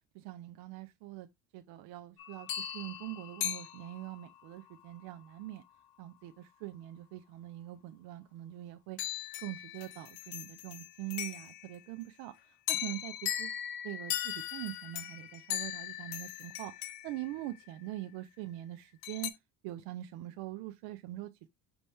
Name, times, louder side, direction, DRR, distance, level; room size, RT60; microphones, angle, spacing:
voice 1, 0.1-1.3 1.5-5.6 6.0-9.0 9.4-12.3 12.7-13.5 13.8-19.3 19.6-21.5, right 16 dB, 75° right, 0.5 m, -43 dB
sound 1, 2.2-4.4 9.0-11.8 12.7-18.0 19.0-19.3, left 11 dB, 60° left, 0.7 m, -39 dB
5.3 x 2.9 x 3.4 m
cardioid pair, 135°, 40 cm